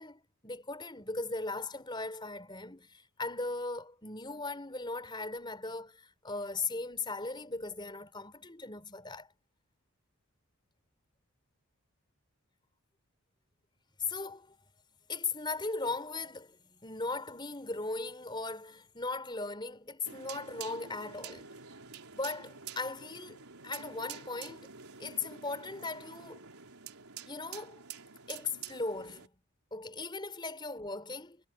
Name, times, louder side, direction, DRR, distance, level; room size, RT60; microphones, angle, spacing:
voice 1, 0.0-9.3 14.1-14.6 15.1-21.5 22.1-24.7 25.0-26.4 27.3-27.8 28.3-29.3 29.7-31.4, left 3 dB, 20° left, 5.4 m, -38 dB
sound 1, 20.1-29.3, right 7 dB, 85° right, 4.2 m, -48 dB
head